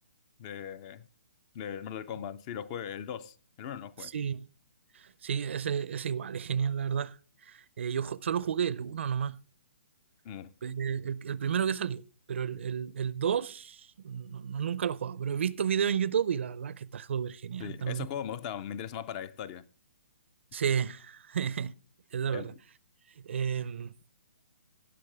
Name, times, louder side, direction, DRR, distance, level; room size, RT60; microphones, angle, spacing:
voice 1, 0.4-1.1 1.5-4.1 10.2-10.5 17.6-19.6 22.3-22.6, left 9 dB, 30° left, 0.5 m, -39 dB
voice 2, 4.0-4.5 4.9-7.2 7.5-9.4 10.6-12.0 12.3-18.1 20.5-21.7 22.1-22.5 23.2-23.9, right 7 dB, 65° right, 0.5 m, -31 dB
18.0 x 6.4 x 3.4 m
hypercardioid pair, 150°, 7 cm